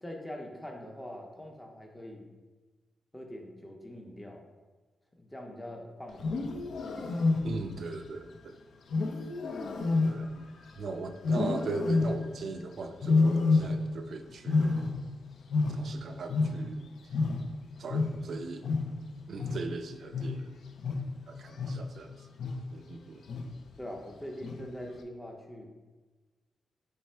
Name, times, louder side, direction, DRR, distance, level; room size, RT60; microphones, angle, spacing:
voice 1, 0.0-2.3 3.1-4.5 5.2-6.5 23.8-25.7, left 1 dB, 10° left, 1 dB, 0.6 m, -43 dB
Wild animals, 6.1-7.8 8.9-10.8 11.2-12.4 13.0-14.1 14.3-16.9 17.1-22.0 22.4-22.8 23.3-23.7 24.4-24.9, left 3 dB, 65° left, 0.4 m, -29 dB
voice 2, 7.4-8.6 10.1-10.3 10.8-15.0 15.7-16.9 17.8-18.7 19.3-20.6 21.3-22.1 22.7-23.2, right 3 dB, 60° right, 7 dB, 0.3 m, -39 dB
3.3 x 3.2 x 4.3 m, 1.3 s
wide cardioid pair, 140°, 0 cm